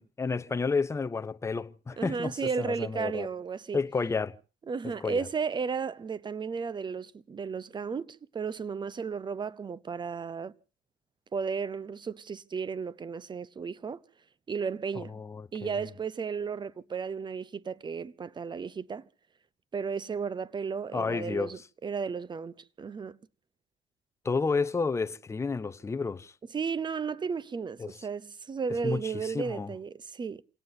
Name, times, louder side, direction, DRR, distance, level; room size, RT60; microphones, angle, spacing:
voice 1, 0.0-3.3 3.7-4.4 4.8-5.3 15.0-15.9 20.9-21.6 24.2-26.3 27.8-28.0 28.8-29.7, left 4 dB, 15° left, 0.7 m, -31 dB
voice 2, 2.0-3.8 4.7-10.5 11.3-14.0 14.5-15.2 15.5-19.1 19.7-23.2 26.5-30.4, right 5 dB, 25° right, 0.8 m, -34 dB
28.5 x 17.5 x 2.7 m
cardioid pair, 110°, 17 cm